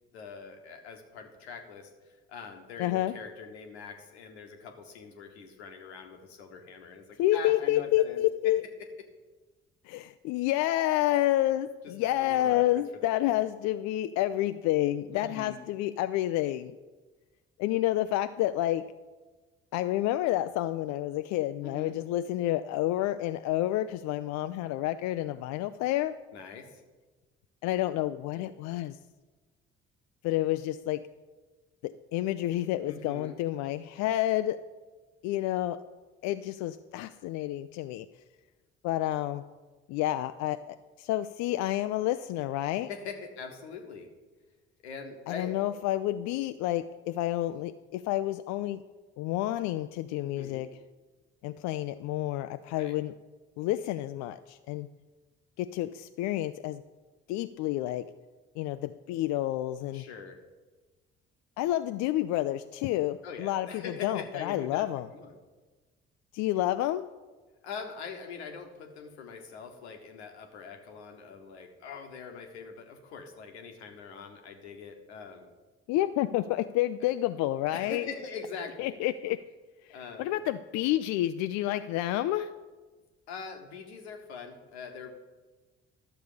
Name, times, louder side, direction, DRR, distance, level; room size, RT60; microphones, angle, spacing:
voice 1, 0.1-7.0 7.3-8.5 12.2-13.4 15.1-15.6 21.6-21.9 26.3-26.8 32.8-33.4 42.8-44.1 44.8-45.5 50.2-50.6 52.7-52.9 59.9-60.4 63.2-65.4 67.6-75.5 77.7-78.9 79.9-80.4 83.3-85.1, left 5 dB, 80° left, 4 dB, 1.2 m, -43 dB
voice 2, 2.8-3.1 7.2-8.6 9.9-16.7 17.6-18.9 19.7-26.1 27.6-29.0 30.2-31.0 31.8-34.6 35.2-35.8 36.2-38.1 38.8-39.4 39.9-42.9 45.3-48.8 49.2-50.7 51.4-53.1 53.6-54.9 55.6-56.8 57.3-58.1 58.6-60.0 61.6-65.1 66.3-67.0 75.9-78.0 78.8-79.4 79.9-82.5, left 14 dB, 60° left, 10 dB, 0.4 m, -29 dB
12.0 x 6.7 x 5.0 m, 1.3 s
figure-of-eight pair, 50°, 32 cm